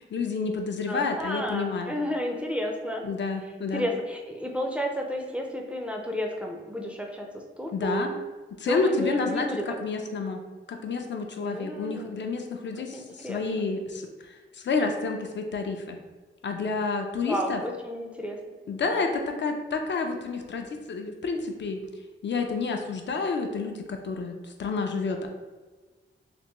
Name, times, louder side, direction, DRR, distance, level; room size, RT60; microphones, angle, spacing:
voice 1, 0.0-2.0 3.0-3.9 7.7-8.2 8.6-10.4 10.7-16.0 16.4-17.6 18.7-21.8 22.2-25.3, left 4 dB, 65° left, 4 dB, 0.4 m, -29 dB
voice 2, 0.9-3.1 3.7-8.0 8.7-9.7 11.4-12.2 12.9-13.6 17.2-18.4, equal, 5° right, 1 dB, 0.4 m, -32 dB
3.3 x 2.5 x 2.9 m, 1.3 s
wide cardioid pair, 100°, 20 cm